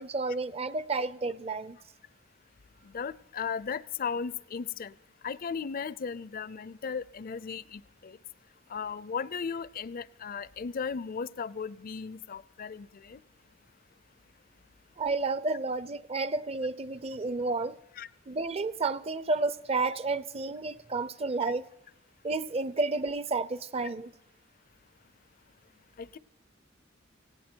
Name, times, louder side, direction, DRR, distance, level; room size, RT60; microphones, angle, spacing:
voice 1, 0.0-1.8 15.0-17.8 18.3-21.7 22.2-24.1, right 3 dB, 30° right, 0.6 m, -31 dB
voice 2, 2.8-5.0 5.2-8.2 8.7-13.2 18.0-18.1 26.0-26.2, left 6 dB, 50° left, 0.5 m, -36 dB
18.0 x 17.0 x 4.5 m
head